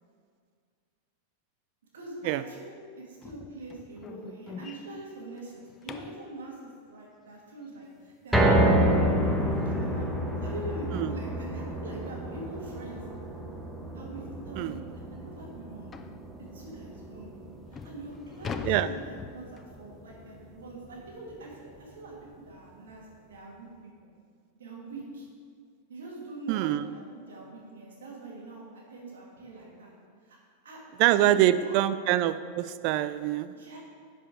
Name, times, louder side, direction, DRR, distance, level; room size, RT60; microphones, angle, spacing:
voice 1, 1.9-13.0 13.9-14.8 15.1-15.9 16.5-17.3 17.8-23.7 24.0-24.1 24.5-25.3 25.9-28.6 28.9-29.9 30.2-30.4 30.6-30.8 31.1-31.8 33.5-33.8, right 2 dB, 75° right, -3 dB, 2.1 m, -43 dB
sound 1, 3.2-6.3 9.1-9.2 9.7-9.9 10.2-10.3 10.8-10.9 12.0-12.2 12.5-12.7 13.4-13.5 13.8-13.9 14.4-14.5 15.9-16.2 16.9-17.0 17.5-19.8, left 6 dB, 25° left, 0.4 m, -42 dB
sound 2, 8.3-20.6 21.0-21.1 21.5-21.6, equal, 5° right, 1.0 m, -29 dB
voice 2, 26.5-26.9 31.0-33.5, right 13 dB, 50° right, 13 dB, 0.3 m, -25 dB
10.5 x 5.0 x 3.8 m, 2.1 s
hypercardioid pair, 100°, 0 cm